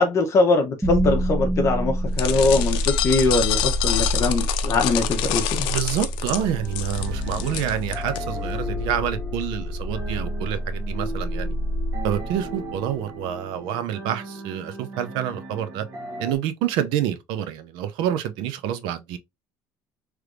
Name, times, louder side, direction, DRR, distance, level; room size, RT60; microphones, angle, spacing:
voice 1, 0.0-5.7, left 3 dB, 40° left, 0.8 m, -22 dB
sound 1, 0.8-12.9, equal, 10° right, 0.6 m, -27 dB
sound 2, 2.2-8.2, left 13 dB, 90° left, 0.5 m, -27 dB
voice 2, 5.7-11.5 12.0-15.8 16.2-19.2, right 10 dB, 80° right, 0.6 m, -27 dB
sound 3, 6.3-16.4, right 1 dB, 40° right, 1.0 m, -38 dB
3.3 x 3.1 x 2.4 m
cardioid pair, 145°, 8 cm